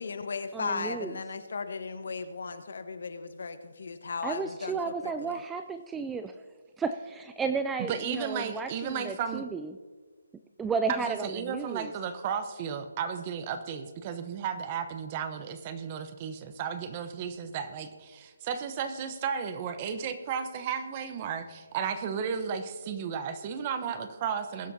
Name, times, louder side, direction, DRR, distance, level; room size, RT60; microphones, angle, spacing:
voice 1, 0.0-5.4, left 4 dB, 60° left, 10 dB, 1.2 m, -36 dB
voice 2, 0.5-1.2 4.2-6.3 6.8-9.7 10.6-11.9, right 5 dB, 5° right, 8 dB, 0.3 m, -33 dB
voice 3, 7.9-9.4 10.9-24.7, right 7 dB, 25° right, 9 dB, 0.9 m, -34 dB
21.0 x 11.0 x 2.8 m, 1.5 s
hypercardioid pair, 160°, 0 cm